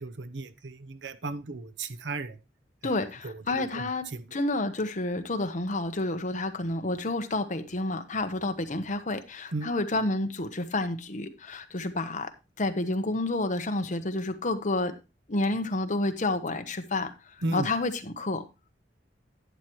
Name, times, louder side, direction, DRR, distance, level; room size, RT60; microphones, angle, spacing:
voice 1, 0.0-2.4 2.8-2.9 3.2-4.4 9.5-9.7 17.4-17.7, right 2 dB, 90° right, 0.8 m, -35 dB
voice 2, 2.8-12.3 12.6-15.0 15.3-17.1 17.5-18.4, left 2 dB, 45° left, 1.2 m, -29 dB
11.5 x 9.1 x 3.2 m
head